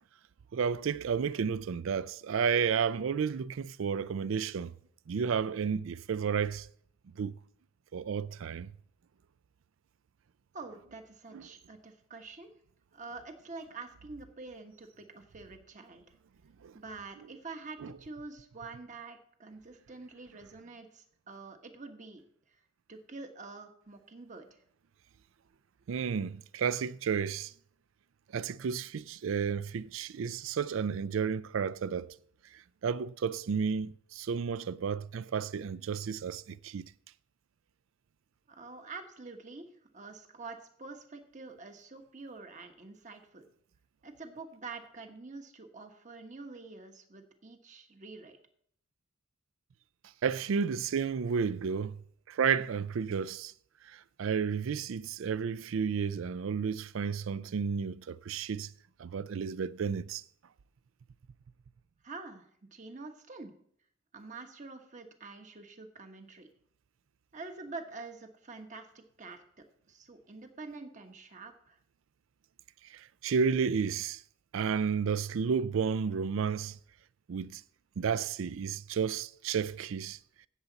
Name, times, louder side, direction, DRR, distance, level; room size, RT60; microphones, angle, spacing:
voice 1, 0.5-4.7 5.1-6.7 7.2-7.4 7.9-8.7 11.3-11.4 16.6-16.8 17.8-17.9 25.9-27.5 28.3-32.1 32.5-36.9 50.2-52.0 52.3-53.5 53.8-58.7 59.0-60.2 72.9-74.2 74.5-76.8 77.3-77.6 78.0-80.2, right 6 dB, 80° right, 0.4 m, -32 dB
voice 2, 10.5-12.5 12.9-16.0 16.7-22.2 22.5-22.6 22.9-24.6 38.5-43.4 44.0-48.4 62.0-63.5 64.1-66.5 67.3-69.4 69.9-71.8, right 3 dB, 40° right, 1.2 m, -46 dB
17.0 x 7.1 x 4.0 m
head